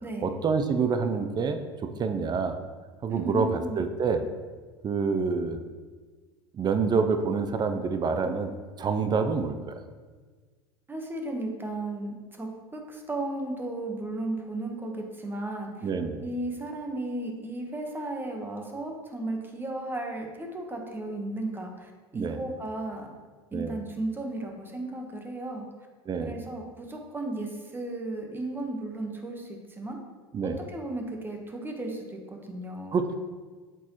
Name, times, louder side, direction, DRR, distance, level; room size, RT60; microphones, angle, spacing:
voice 1, 0.2-1.6 2.0-2.6 3.0-4.2 4.8-5.6 6.5-8.5 8.8-9.8 15.8-16.2 22.1-22.4 23.5-23.8 26.1-26.3 30.3-30.6 32.9-33.1, right 5 dB, 30° right, 8 dB, 0.6 m, -27 dB
voice 2, 3.1-3.8 10.9-15.9 16.2-23.1 23.5-25.7 26.2-30.0 30.4-33.0, right 2 dB, 15° right, 2 dB, 1.2 m, -35 dB
8.0 x 4.5 x 3.1 m, 1.4 s
hypercardioid pair, 85°, 14 cm